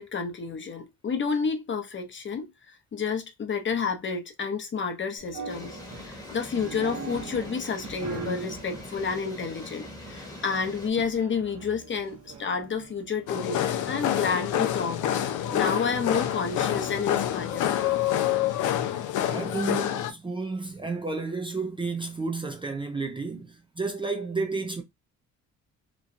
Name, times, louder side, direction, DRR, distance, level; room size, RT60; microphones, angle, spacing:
voice 1, 0.0-2.5 2.9-5.8 6.1-15.0 15.5-17.7, left 5 dB, 40° left, 0.8 m, -30 dB
sound 1, 5.2-18.5, right 4 dB, 60° right, 1.1 m, -43 dB
sound 2, 5.5-10.9, left 2 dB, 15° left, 1.2 m, -43 dB
sound 3, 13.3-20.1, left 11 dB, 80° left, 0.5 m, -27 dB
voice 2, 19.3-24.8, right 3 dB, 15° right, 0.5 m, -31 dB
3.0 x 2.2 x 2.6 m
cardioid pair, 90°, 30 cm